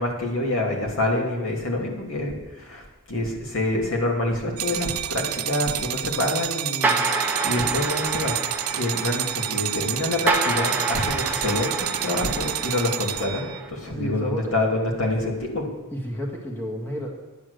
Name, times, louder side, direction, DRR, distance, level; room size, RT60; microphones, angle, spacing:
voice 1, 0.0-8.3 8.7-15.7, left 1 dB, 65° left, 0 dB, 2.5 m, -27 dB
sound 1, 4.6-13.6, right 13 dB, 80° right, 0.5 m, -29 dB
sound 2, 6.8-13.7, right 3 dB, 10° right, 1.0 m, -28 dB
voice 2, 13.9-14.6 15.9-17.1, equal, 10° left, -1 dB, 1.8 m, -31 dB
10.5 x 9.0 x 6.6 m, 1.1 s
head